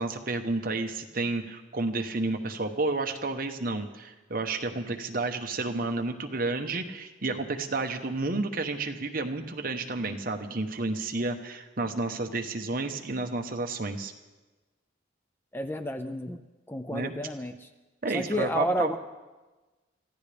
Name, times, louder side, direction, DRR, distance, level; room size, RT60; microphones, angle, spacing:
voice 1, 0.0-14.1 16.9-17.1 18.0-19.0, right 2 dB, 45° right, 5 dB, 1.1 m, -31 dB
voice 2, 15.5-16.4 16.7-17.7 18.1-19.0, equal, 10° left, 8 dB, 0.5 m, -31 dB
25.0 x 15.0 x 3.5 m, 1.2 s
head